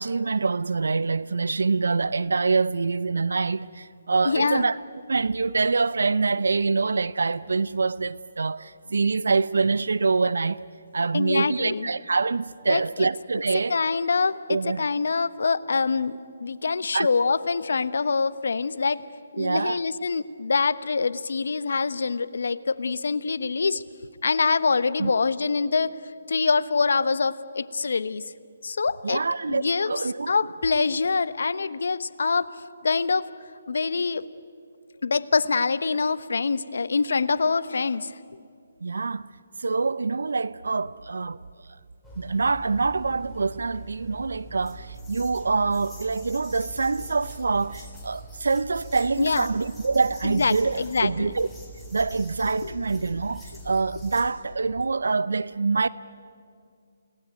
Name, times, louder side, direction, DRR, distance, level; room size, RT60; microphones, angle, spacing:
voice 1, 0.0-4.8 5.1-10.6 10.9-13.8 14.5-14.9 16.9-17.1 19.4-19.8 25.0-25.1 29.0-30.3 38.8-39.3 39.6-41.4 42.2-51.5 51.9-55.9, right 4 dB, 75° right, 0.6 m, -25 dB
voice 2, 4.2-4.7 11.1-11.9 12.7-13.1 13.7-19.0 19.3-23.8 24.2-25.9 26.3-28.2 28.6-29.2 29.5-30.0 30.3-32.5 32.8-33.3 33.7-34.2 35.0-38.1 49.2-49.4 50.2-51.3 52.6-52.7, left 4 dB, 70° left, 1.0 m, -25 dB
sound 1, 42.0-54.3, right 1 dB, 5° left, 4.0 m, -43 dB
29.0 x 18.5 x 9.6 m
figure-of-eight pair, 150°, 0 cm